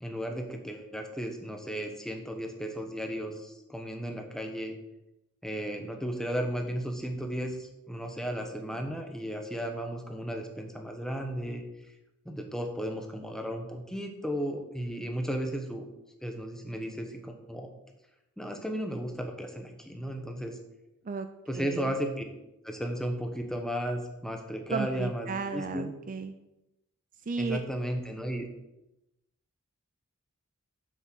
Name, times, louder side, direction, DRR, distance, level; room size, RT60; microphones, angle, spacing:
voice 1, 0.0-4.7 5.4-11.6 12.2-15.9 16.2-17.7 18.4-20.6 21.5-22.2 22.6-25.9 27.4-28.5, equal, ahead, 3 dB, 1.1 m, -34 dB
voice 2, 21.5-21.9 24.7-26.3 27.3-27.6, right 4 dB, 40° right, 9 dB, 0.5 m, -34 dB
7.3 x 6.9 x 6.2 m, 0.92 s
head